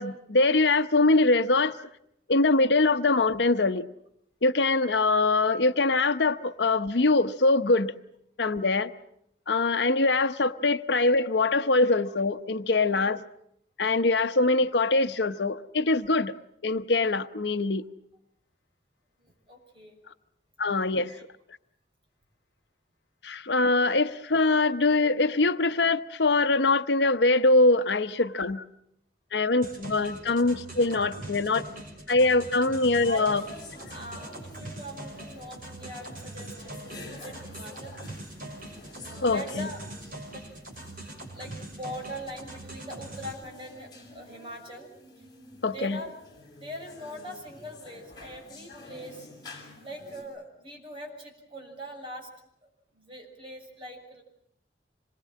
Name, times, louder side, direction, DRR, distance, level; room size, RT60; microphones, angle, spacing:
voice 1, 0.0-1.9 2.3-3.9 4.4-7.9 8.4-8.9 9.5-13.2 13.8-16.3 16.6-17.8 20.6-21.1 23.2-28.6 29.3-31.6 32.1-33.4 39.2-39.7 45.6-46.0, left 3 dB, 75° left, 9 dB, 0.9 m, -23 dB
voice 2, 19.2-20.0 21.0-21.2 33.0-33.5 33.9-38.0 39.2-39.8 40.3-40.5 41.3-44.9 45.6-46.1 46.6-49.3 49.8-52.3 52.9-54.2, equal, 30° right, 1 dB, 6.7 m, -42 dB
sound 1, 29.6-43.3, right 1 dB, 50° right, 6.5 m, -42 dB
sound 2, 33.3-50.2, left 2 dB, 25° left, 6.6 m, -49 dB
26.5 x 22.0 x 7.5 m, 0.75 s
head